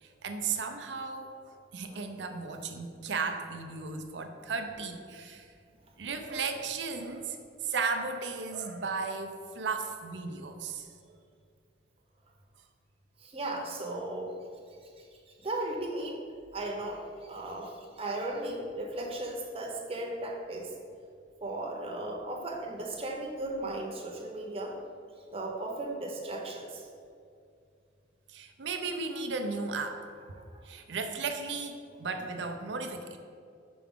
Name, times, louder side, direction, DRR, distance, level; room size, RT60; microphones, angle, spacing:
voice 1, 0.0-1.3 1.7-5.5 6.0-7.4 7.6-10.9 28.3-30.0 30.6-33.2, right 4 dB, 75° right, 6 dB, 0.6 m, -35 dB
voice 2, 13.2-14.3 15.4-16.2 16.5-20.7 21.4-24.8 25.3-26.8 30.4-30.6, right 1 dB, 35° right, 0 dB, 0.8 m, -36 dB
6.0 x 4.7 x 3.6 m, 2.3 s
head